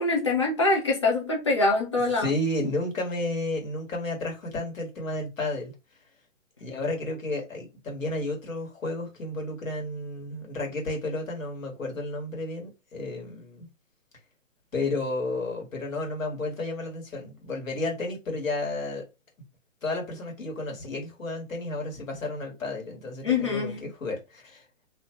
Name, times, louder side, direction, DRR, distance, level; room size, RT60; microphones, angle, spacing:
voice 1, 0.0-2.3 23.2-23.8, left 3 dB, 20° left, 0.6 m, -24 dB
voice 2, 2.2-5.7 6.6-13.7 14.7-19.0 19.8-24.6, left 2 dB, 75° left, 1.6 m, -32 dB
2.7 x 2.3 x 2.9 m
hypercardioid pair, 165°, 40 cm